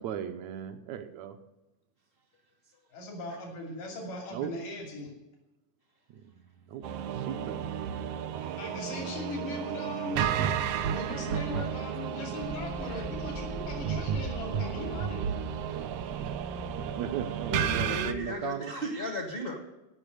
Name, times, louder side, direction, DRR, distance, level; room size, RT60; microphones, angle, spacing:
voice 1, 0.0-1.4 4.3-4.5 6.7-6.8 7.2-7.7 16.2-16.4 16.8-18.7, right 9 dB, 75° right, 7 dB, 1.9 m, -36 dB
voice 2, 2.9-5.1 8.6-10.2 10.8-15.4, left 2 dB, 80° left, 1 dB, 4.2 m, -39 dB
sound 1, 6.8-18.1, right 8 dB, 90° right, 1.3 m, -32 dB
sound 2, 12.4-18.3, right 1 dB, 55° right, 0.7 m, -44 dB
voice 3, 17.5-19.6, left 1 dB, 35° left, 3 dB, 0.9 m, -36 dB
15.5 x 5.8 x 7.8 m, 1.0 s
omnidirectional pair, 3.7 m